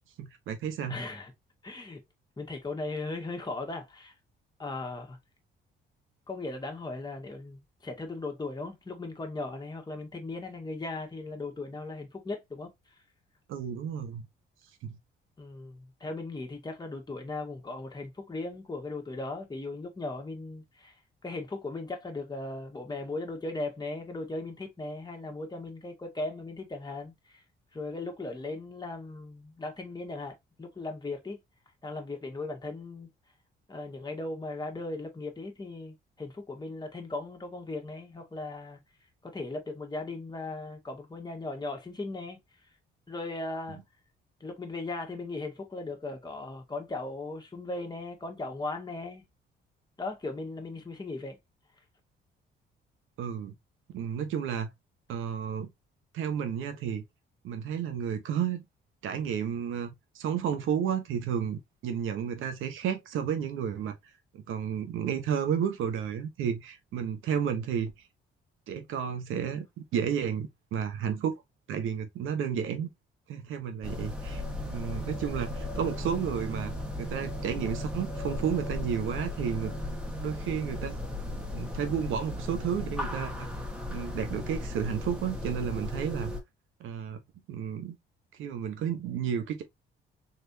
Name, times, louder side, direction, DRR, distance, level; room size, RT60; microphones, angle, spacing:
voice 1, 0.2-1.0 13.5-14.2 14.8-15.0 53.2-53.5 53.9-54.7 55.1-55.7 56.1-57.0 57.4-58.6 59.0-64.0 64.3-67.9 68.7-69.7 69.9-71.4 71.7-72.9 73.3-76.7 77.0-79.7 80.2-80.9 81.5-83.5 83.9-86.3 86.8-87.2 87.5-88.0 88.3-89.6, right 8 dB, 85° right, 1.1 m, -32 dB
voice 2, 0.9-1.3 1.6-2.0 2.4-4.1 4.6-5.2 6.3-12.7 15.4-21.0 21.2-27.4 27.7-31.4 31.8-33.1 33.7-38.8 39.2-42.4 43.1-43.8 44.4-49.2 50.0-51.4, left 2 dB, 20° left, 1.7 m, -37 dB
sound 1, 73.8-86.4, left 1 dB, 5° right, 1.6 m, -36 dB
4.2 x 3.3 x 2.7 m
cardioid pair, 90°, 20 cm